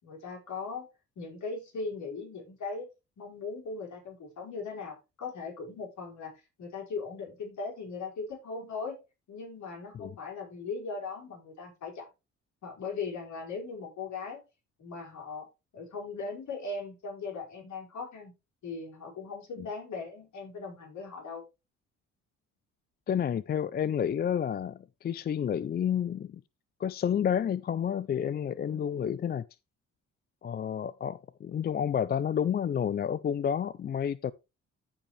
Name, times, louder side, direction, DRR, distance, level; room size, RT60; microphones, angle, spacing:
voice 1, 0.0-0.8 1.1-2.9 3.2-9.0 9.3-12.1 12.6-14.4 14.8-15.5 15.7-18.3 18.6-21.4 28.7-28.9, left 4 dB, 70° left, 4.8 m, -39 dB
voice 2, 23.1-26.4 26.8-29.4 30.4-34.3, left 8 dB, 35° left, 0.4 m, -30 dB
14.0 x 5.1 x 3.2 m
cardioid pair, 90°, 30 cm